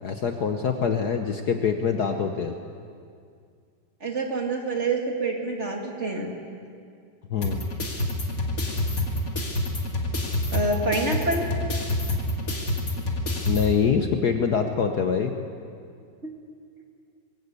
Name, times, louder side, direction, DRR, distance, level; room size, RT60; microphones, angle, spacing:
voice 1, 0.0-2.6 7.3-7.6 13.5-15.3, left 6 dB, 55° left, 5 dB, 1.3 m, -24 dB
voice 2, 4.0-6.4 10.5-11.5 16.2-16.3, right 2 dB, 30° right, 1 dB, 2.3 m, -27 dB
sound 1, 7.4-13.7, left 1 dB, 40° left, 2.6 m, -27 dB
21.0 x 16.5 x 8.3 m, 2.3 s
omnidirectional pair, 2.4 m